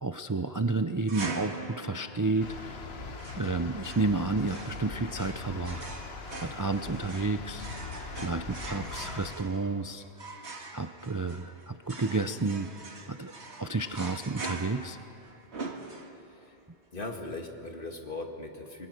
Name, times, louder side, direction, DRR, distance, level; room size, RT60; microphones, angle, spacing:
voice 1, 0.0-2.8 3.4-5.8 6.4-7.7 8.2-10.0 10.7-13.3 13.6-15.0, right 3 dB, 25° right, 8 dB, 0.5 m, -31 dB
sound 1, 1.1-16.4, right 3 dB, 90° right, 2.0 m, -43 dB
sound 2, 2.4-9.4, left 4 dB, 70° left, 1.4 m, -41 dB
voice 2, 16.2-16.6 16.9-18.9, left 2 dB, 55° left, 3 dB, 2.2 m, -39 dB
27.5 x 21.0 x 6.6 m, 2.7 s
omnidirectional pair, 1.1 m